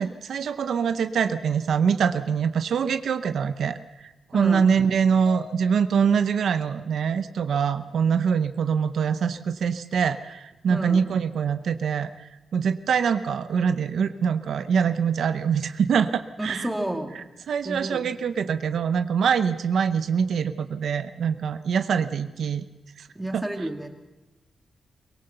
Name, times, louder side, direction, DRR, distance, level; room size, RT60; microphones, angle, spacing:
voice 1, 0.0-16.7 17.5-22.6 23.0-23.1 23.3-23.4, right 6 dB, 80° right, 11 dB, 0.7 m, -24 dB
voice 2, 4.3-4.6 10.7-11.0 16.4-17.1 17.6-18.1 23.2-23.9, right 1 dB, 5° right, 4 dB, 2.0 m, -30 dB
sound 1, 5.3-6.4, left 6 dB, 75° left, 6.8 m, -43 dB
23.0 x 18.5 x 6.8 m, 1.1 s
wide cardioid pair, 140°, 0 cm